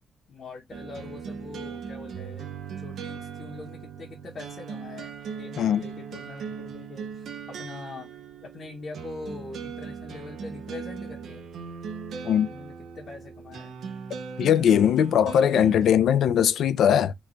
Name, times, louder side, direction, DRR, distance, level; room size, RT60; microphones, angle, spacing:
voice 1, 0.3-2.5 2.8-8.1 8.4-11.5 12.5-13.8, left 3 dB, 45° left, 0.7 m, -43 dB
sound 1, 0.7-15.9, right 6 dB, 75° right, 0.5 m, -39 dB
voice 2, 14.4-17.1, left 9 dB, 85° left, 0.3 m, -20 dB
3.0 x 2.2 x 3.7 m
wide cardioid pair, 145°, 0 cm